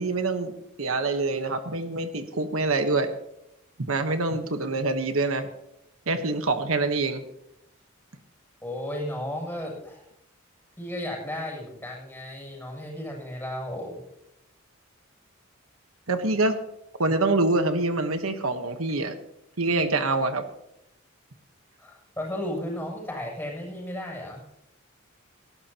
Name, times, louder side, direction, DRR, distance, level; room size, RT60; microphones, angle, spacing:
voice 1, 0.0-3.1 3.9-5.5 6.1-7.2 16.1-16.6 17.0-19.1 19.6-20.4, right 3 dB, 80° right, 8 dB, 1.3 m, -25 dB
voice 2, 8.6-10.0 10.8-14.0 21.8-24.4, left 1 dB, 10° left, -1 dB, 7.5 m, -34 dB
19.0 x 16.0 x 3.0 m, 0.81 s
head